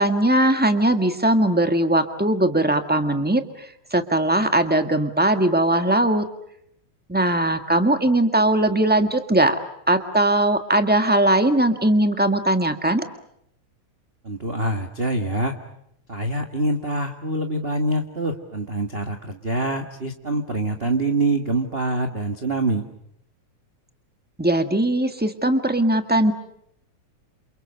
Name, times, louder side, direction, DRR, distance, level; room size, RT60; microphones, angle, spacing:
voice 1, 0.0-6.2 7.1-9.6 9.9-13.0 24.4-26.3, right 1 dB, 10° right, 7 dB, 0.6 m, -20 dB
voice 2, 14.2-15.5 16.1-22.9, right 2 dB, 25° right, 5 dB, 1.4 m, -25 dB
29.0 x 28.5 x 6.7 m, 0.74 s
omnidirectional pair, 3.5 m